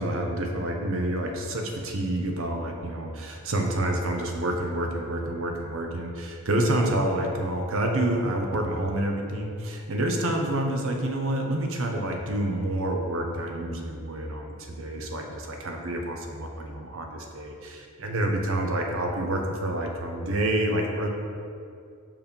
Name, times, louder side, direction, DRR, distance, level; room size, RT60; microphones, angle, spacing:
voice 1, 0.0-21.1, right 1 dB, 70° right, 3 dB, 0.8 m, -28 dB
5.4 x 4.8 x 5.2 m, 2.4 s
head